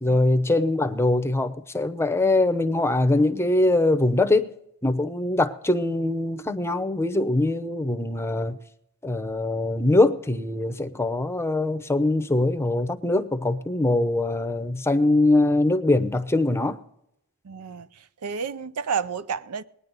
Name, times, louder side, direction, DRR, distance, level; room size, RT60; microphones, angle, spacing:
voice 1, 0.0-4.5 4.8-8.6 9.0-16.8, left 2 dB, 10° left, 0.7 m, -22 dB
voice 2, 17.4-17.9 18.2-19.6, right 6 dB, 85° right, 0.6 m, -30 dB
21.0 x 9.7 x 4.0 m
head